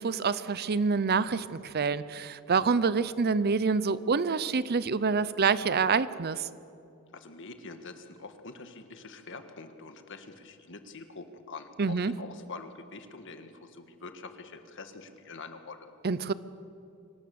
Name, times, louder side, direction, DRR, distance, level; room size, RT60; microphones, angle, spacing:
voice 1, 0.0-6.5 11.8-12.1 16.0-16.3, right 5 dB, 45° right, 16 dB, 0.6 m, -27 dB
voice 2, 7.1-15.9, left 3 dB, 60° left, 8 dB, 1.6 m, -45 dB
24.5 x 18.5 x 7.0 m, 2.6 s
head